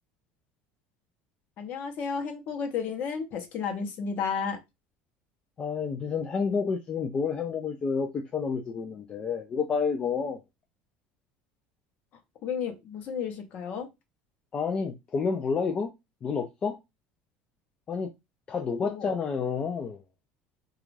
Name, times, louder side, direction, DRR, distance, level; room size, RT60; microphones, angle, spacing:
voice 1, 1.6-4.6 12.1-13.9 18.8-19.1, left 6 dB, 45° left, 0.7 m, -33 dB
voice 2, 5.6-10.4 14.5-15.9 16.2-16.8 17.9-18.1 18.5-20.0, left 5 dB, 25° left, 0.3 m, -29 dB
2.5 x 2.3 x 3.1 m
cardioid pair, 160°, 4 cm